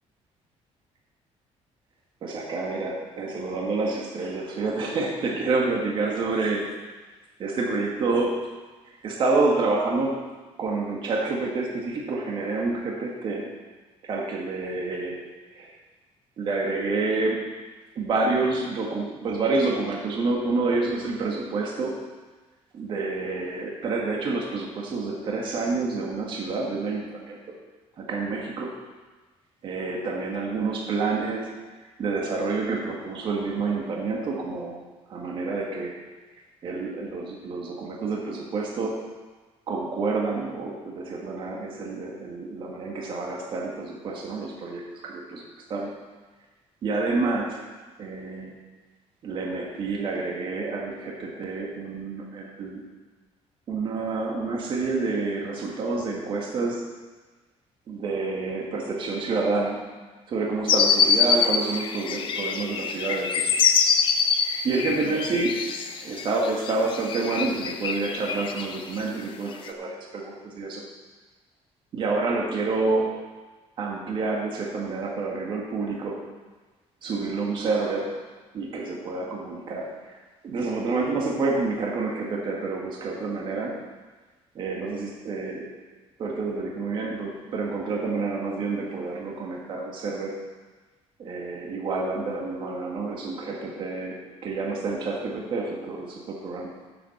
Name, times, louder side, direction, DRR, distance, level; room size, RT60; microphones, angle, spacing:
voice 1, 2.2-6.7 7.4-8.4 9.0-10.2 10.6-13.5 14.0-15.2 15.5-15.7 16.4-17.4 18.0-21.9 22.7-27.4 28.0-28.7 29.6-31.5 31.8-34.8 35.1-35.9 36.6-39.0 39.7-45.4 45.7-45.9 46.8-47.6 48.0-48.5 49.2-52.8 53.7-56.8 57.9-59.8 60.3-63.6 64.6-70.8 71.9-73.2 73.8-76.2 77.0-78.1 78.5-80.1 80.4-83.8 84.6-85.7 86.2-90.3 91.2-96.7, right 3 dB, 45° right, -1 dB, 1.7 m, -28 dB
sound 1, 60.7-69.0 69.7-69.8, left 6 dB, 45° left, 0.8 m, -24 dB
9.8 x 7.6 x 7.1 m, 1.3 s
cardioid pair, 175°, 12 cm